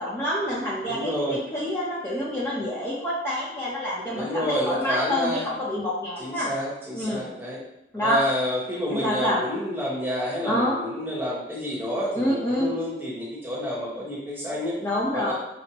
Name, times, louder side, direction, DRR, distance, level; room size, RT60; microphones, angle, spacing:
voice 1, 0.0-6.5 6.9-7.3 7.9-8.2 8.9-9.4 10.4-10.8 12.1-12.7 14.8-15.3, left 1 dB, 15° left, -8 dB, 0.6 m, -27 dB
voice 2, 0.9-1.4 4.1-5.5 6.2-7.6 8.0-14.7 15.1-15.3, equal, 10° right, -6 dB, 1.0 m, -29 dB
5.9 x 2.1 x 2.9 m, 0.90 s
head